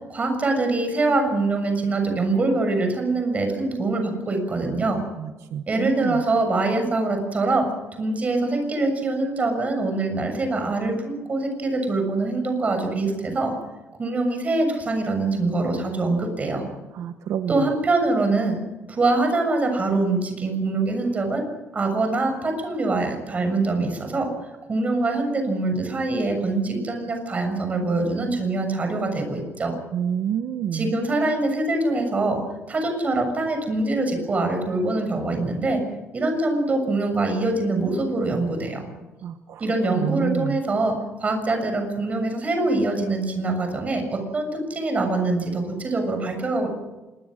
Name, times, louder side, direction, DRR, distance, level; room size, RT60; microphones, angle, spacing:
voice 1, 0.1-5.0 5.7-7.7 8.0-13.5 14.0-16.7 17.5-18.6 18.9-21.4 21.7-24.3 24.7-29.7 30.7-32.4 32.7-35.8 36.1-38.9 39.6-40.9 41.2-46.7, right 2 dB, 30° right, 5 dB, 6.9 m, -24 dB
voice 2, 5.2-6.2 16.9-17.7 29.9-30.9 39.2-39.6 39.9-40.6, right 9 dB, 70° right, 8 dB, 1.1 m, -28 dB
26.0 x 22.0 x 6.5 m, 1.1 s
cardioid pair, 145°, 5 cm